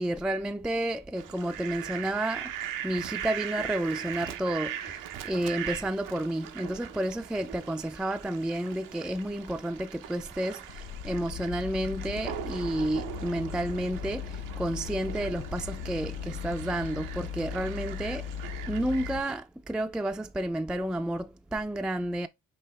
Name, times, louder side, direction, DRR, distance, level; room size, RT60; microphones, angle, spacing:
voice 1, 0.0-2.5 2.8-18.3 18.7-22.3, right 1 dB, 5° right, 0.3 m, -31 dB
Fowl, 1.2-19.3, right 10 dB, 85° right, 0.7 m, -40 dB
sound 1, 10.7-19.2, left 8 dB, 80° left, 0.6 m, -38 dB
5.5 x 2.7 x 3.1 m
supercardioid pair, 60°, 32 cm